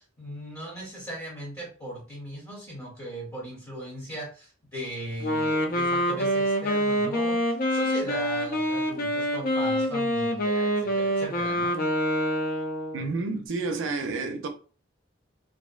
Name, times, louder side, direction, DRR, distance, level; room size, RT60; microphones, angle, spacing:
voice 1, 0.0-7.4 7.7-11.8, right 1 dB, 15° left, 0.7 m, -38 dB
Wind instrument woodwind instrument, 5.2-13.1, equal, 50° left, 0.4 m, -26 dB
voice 2, 12.9-14.5, right 3 dB, 70° right, 0.5 m, -30 dB
2.4 x 2.1 x 2.4 m
head